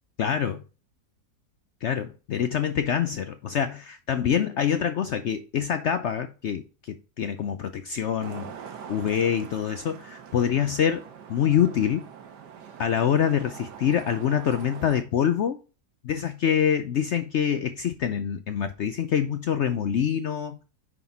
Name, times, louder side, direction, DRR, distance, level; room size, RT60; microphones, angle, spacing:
voice 1, 0.2-0.6 1.8-11.0 11.3-12.0 12.8-15.6 16.0-20.6, left 8 dB, 75° left, 0.6 m, -25 dB
Traffic noise roadway noise, 8.2-15.0, right 7 dB, 80° right, 1.6 m, -43 dB
9.3 x 4.0 x 4.1 m
omnidirectional pair, 1.8 m